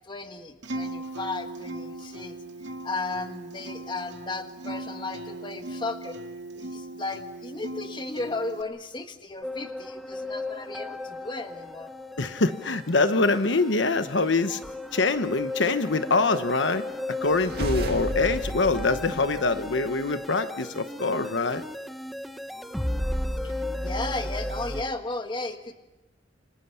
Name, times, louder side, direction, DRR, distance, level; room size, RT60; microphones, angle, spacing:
voice 1, 0.1-2.4 2.8-6.2 6.6-11.9 23.4-23.5 23.8-25.7, left 3 dB, 25° left, 7 dB, 1.5 m, -35 dB
Acoustic guitar, 0.6-8.6, right 2 dB, 75° right, 2.3 m, -38 dB
sound 1, 9.4-24.8, left 1 dB, ahead, 1.0 m, -35 dB
voice 2, 12.2-14.6 14.9-16.8 17.2-21.6, left 3 dB, 75° left, 10 dB, 1.1 m, -24 dB
sound 2, 17.2-20.0, right 1 dB, 55° right, 2.2 m, -34 dB
28.5 x 25.0 x 5.8 m, 1.0 s
head